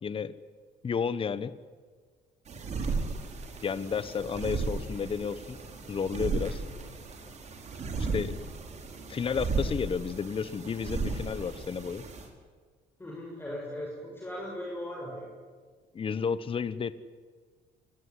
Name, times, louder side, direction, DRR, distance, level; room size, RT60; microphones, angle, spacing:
voice 1, 0.0-0.3 0.8-1.5 3.6-5.6 5.9-6.6 8.0-8.4 9.1-12.0 15.9-16.9, left 6 dB, 30° left, 15 dB, 1.2 m, -32 dB
sound 1, 2.5-12.3, right 4 dB, 40° right, 5.0 m, -35 dB
voice 2, 13.0-15.3, left 1 dB, 15° left, -2 dB, 7.3 m, -38 dB
27.5 x 19.5 x 9.9 m, 1.5 s
cardioid pair, 110°, 17 cm